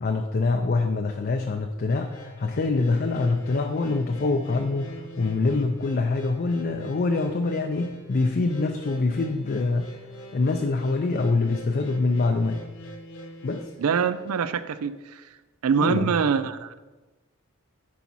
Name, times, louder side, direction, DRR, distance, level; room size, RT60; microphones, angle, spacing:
voice 1, 0.0-9.9 10.3-12.6 13.4-13.7 15.8-16.1, left 3 dB, 45° left, 4 dB, 0.4 m, -25 dB
sound 1, 1.9-14.4, equal, 80° left, 1.2 m, -44 dB
voice 2, 13.8-15.2 15.6-16.8, right 6 dB, 85° right, 14 dB, 0.4 m, -24 dB
10.5 x 4.1 x 4.2 m, 1.2 s
head